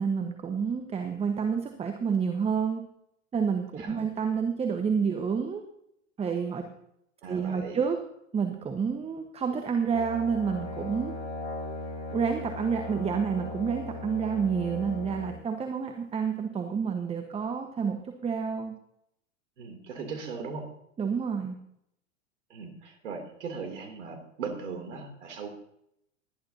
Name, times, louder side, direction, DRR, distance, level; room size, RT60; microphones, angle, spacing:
voice 1, 0.0-2.8 3.3-5.6 6.2-6.6 7.2-8.0 8.3-11.1 12.1-18.7 21.0-21.6, right 6 dB, 15° right, 5 dB, 1.2 m, -29 dB
voice 2, 7.2-7.8 19.6-20.7 22.5-25.5, right 5 dB, 65° right, 4 dB, 3.0 m, -38 dB
Brass instrument, 9.9-15.4, left 2 dB, 70° left, 5.8 m, -38 dB
19.5 x 12.0 x 2.8 m, 0.75 s
figure-of-eight pair, 100°, 38 cm